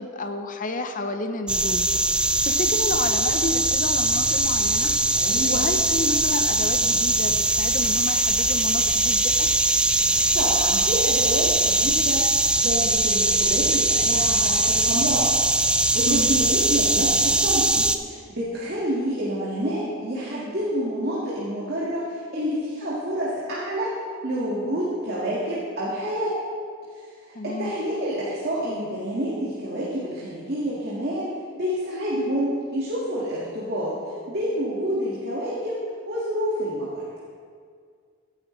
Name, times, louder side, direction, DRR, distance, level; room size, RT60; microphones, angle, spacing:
voice 1, 0.0-1.9 2.4-4.9 5.5-9.5 16.1-16.3 27.3-27.7, left 2 dB, 40° left, 7 dB, 0.8 m, -30 dB
sound 1, 1.5-18.0, right 2 dB, 5° right, 0.3 m, -21 dB
voice 2, 5.1-5.7 10.3-15.3 15.9-24.0 24.2-26.4 26.9-27.0 27.4-34.0 34.3-35.8 36.1-37.0, equal, 50° right, -7 dB, 1.9 m, -28 dB
15.5 x 10.5 x 3.2 m, 2.1 s
head